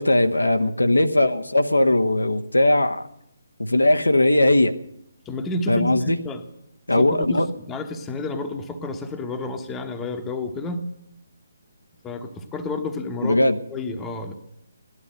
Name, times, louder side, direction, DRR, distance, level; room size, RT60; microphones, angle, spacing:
voice 1, 0.0-3.1 3.6-4.7 5.7-6.2 6.9-7.5 13.2-13.6, left 1 dB, 75° left, 8 dB, 0.9 m, -19 dB
voice 2, 5.2-6.4 7.0-10.9 12.0-14.3, left 2 dB, 10° left, 6 dB, 1.1 m, -30 dB
16.5 x 11.5 x 7.8 m, 0.78 s
figure-of-eight pair, 140°, 0 cm